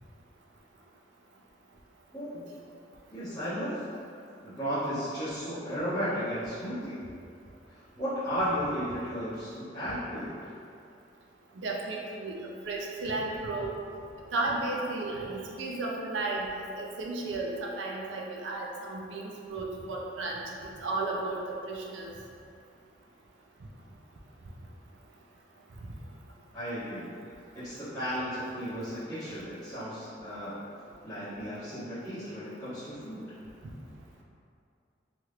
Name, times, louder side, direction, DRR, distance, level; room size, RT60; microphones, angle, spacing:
voice 1, 3.1-3.7 4.4-7.0 7.7-10.5 26.5-27.1 27.5-30.6 31.0-33.2, equal, 10° left, -21 dB, 1.2 m, -34 dB
voice 2, 11.6-12.4 12.7-13.7 14.3-16.5 16.8-22.1, right 2 dB, 80° right, -1 dB, 0.4 m, -34 dB
3.0 x 3.0 x 2.4 m, 2.5 s
head